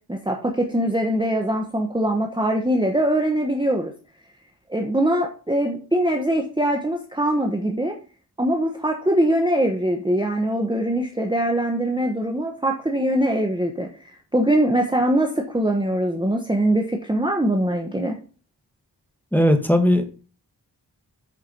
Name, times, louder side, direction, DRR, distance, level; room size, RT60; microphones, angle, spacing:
voice 1, 0.1-3.9 4.7-8.0 8.4-18.2, right 1 dB, 10° right, 1 dB, 1.1 m, -22 dB
voice 2, 19.3-20.1, equal, 5° left, 5 dB, 1.6 m, -17 dB
9.3 x 4.7 x 5.2 m, 0.38 s
wide cardioid pair, 55°, 41 cm